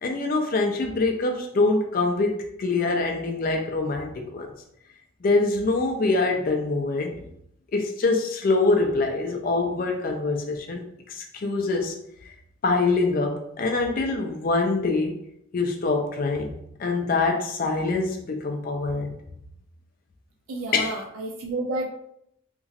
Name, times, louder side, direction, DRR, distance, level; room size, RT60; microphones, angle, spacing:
voice 1, 0.0-4.5 5.2-7.2 7.7-12.0 12.6-15.2 15.5-19.2 20.7-21.0, left 3 dB, 40° left, 3 dB, 0.3 m, -24 dB
voice 2, 20.5-21.9, right 2 dB, 80° right, 2 dB, 0.4 m, -30 dB
2.9 x 2.4 x 2.7 m, 0.75 s
head